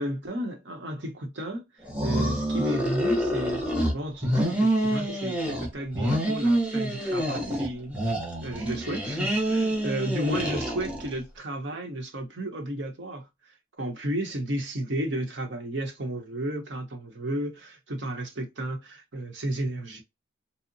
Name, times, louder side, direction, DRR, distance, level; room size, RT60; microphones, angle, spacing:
voice 1, 0.0-3.7 3.9-8.0 8.4-20.0, right 1 dB, 60° right, 0.8 m, -33 dB
sound 1, 1.9-3.9 4.2-5.7 5.9-7.7 7.9-11.1, right 1 dB, 5° right, 0.6 m, -27 dB
2.7 x 2.0 x 2.6 m
head